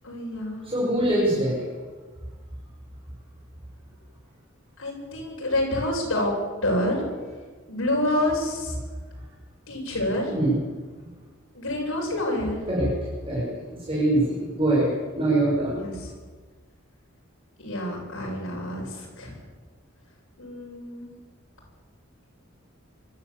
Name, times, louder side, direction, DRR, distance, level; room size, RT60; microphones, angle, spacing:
voice 1, 0.0-0.6 4.8-6.3 6.6-7.0 7.7-8.7 9.7-10.4 11.5-12.6 15.8-16.1 17.6-19.4 20.4-21.1, left 1 dB, 90° left, -2 dB, 8.0 m, -28 dB
voice 2, 0.7-1.6 10.3-10.6 12.7-12.9 13.3-13.5 13.9-14.9 15.1-15.8, right 1 dB, 25° right, -6 dB, 6.6 m, -23 dB
24.0 x 13.5 x 8.5 m, 1.4 s
head